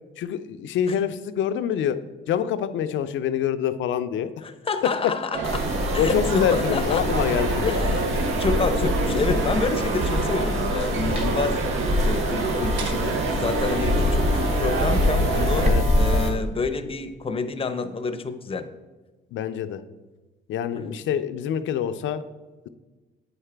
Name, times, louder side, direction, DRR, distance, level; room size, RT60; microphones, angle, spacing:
voice 1, 0.2-2.0 2.3-4.3 6.0-7.8 15.6-15.8 19.3-19.8 20.5-22.2, left 9 dB, 75° left, 12 dB, 0.5 m, -26 dB
voice 2, 4.4-5.7 5.9-7.1 7.7-8.1 8.4-11.6 12.0-18.7 20.7-21.0, left 4 dB, 30° left, 9 dB, 0.6 m, -28 dB
sound 1, 5.3-15.7, right 4 dB, 70° right, 0.7 m, -28 dB
sound 2, 5.4-16.3, left 1 dB, 35° right, 1.6 m, -25 dB
8.3 x 4.8 x 3.3 m, 1.3 s
cardioid pair, 90°, 20 cm